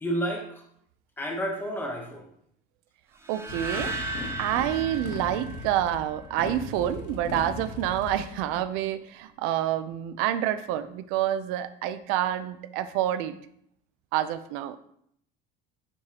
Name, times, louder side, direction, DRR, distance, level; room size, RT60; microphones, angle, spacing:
voice 1, 0.0-0.6 1.2-2.3, equal, 10° left, 1 dB, 0.9 m, -30 dB
sound 1, 3.2-6.4, right 2 dB, 10° right, 0.6 m, -36 dB
voice 2, 3.3-13.4 14.1-14.8, right 12 dB, 75° right, 12 dB, 0.5 m, -28 dB
Motorcycle, 3.5-8.6, left 4 dB, 60° left, 1.4 m, -38 dB
9.7 x 4.7 x 2.9 m, 0.70 s
cardioid pair, 175°, 21 cm